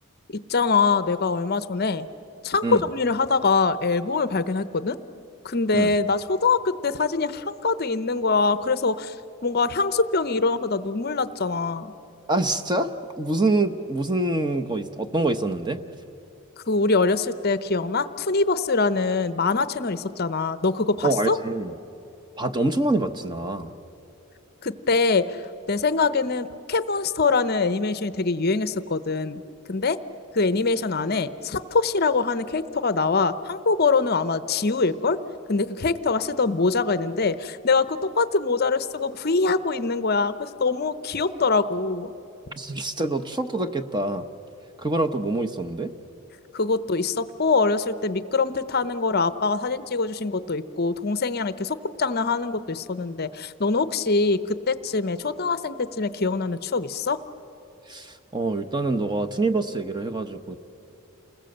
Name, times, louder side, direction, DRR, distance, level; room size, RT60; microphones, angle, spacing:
voice 1, 0.3-2.1 2.4-5.0 5.4-9.2 9.4-11.9 16.7-21.4 24.6-29.4 29.7-30.0 30.3-35.2 35.5-42.1 46.5-57.2, left 4 dB, 45° left, 13 dB, 0.7 m, -24 dB
voice 2, 12.3-15.8 21.0-21.8 22.4-23.7 42.5-44.3 44.8-45.9 57.9-60.6, right 2 dB, 20° right, 9 dB, 0.8 m, -25 dB
29.0 x 21.0 x 7.9 m, 3.0 s
head